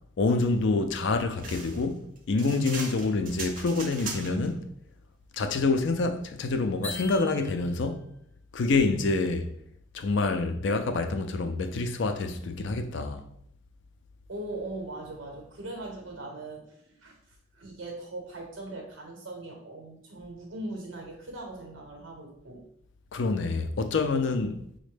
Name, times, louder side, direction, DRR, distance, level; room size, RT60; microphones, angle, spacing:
voice 1, 0.2-4.7 5.3-8.1 8.5-9.5 9.9-13.3 23.1-24.6, left 3 dB, 60° left, 0.4 m, -27 dB
sound 1, 1.4-4.5, right 4 dB, 40° right, 0.6 m, -39 dB
sound 2, 6.8-8.0, left 2 dB, 10° left, 0.7 m, -40 dB
voice 2, 14.3-17.1 17.5-22.6, right 2 dB, 70° right, 0.9 m, -40 dB
4.9 x 2.1 x 3.2 m
head